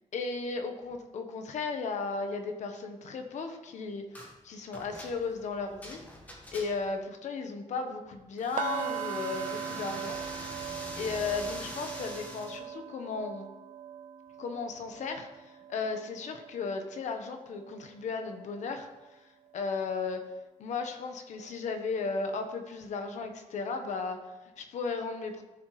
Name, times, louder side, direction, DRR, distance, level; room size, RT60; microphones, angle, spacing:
voice 1, 0.1-4.2 4.4-6.0 6.5-10.2 11.0-13.4 14.4-20.2 20.6-25.4, left 4 dB, 65° left, 6 dB, 1.2 m, -35 dB
sound 1, 4.1-4.3 4.7-7.0 8.4-12.6, equal, 10° left, 1.6 m, -44 dB
sound 2, 8.6-18.5 18.8-19.1 19.5-19.7, right 10 dB, 70° right, 0.5 m, -41 dB
14.0 x 7.2 x 3.3 m, 1.1 s
wide cardioid pair, 155°, 13 cm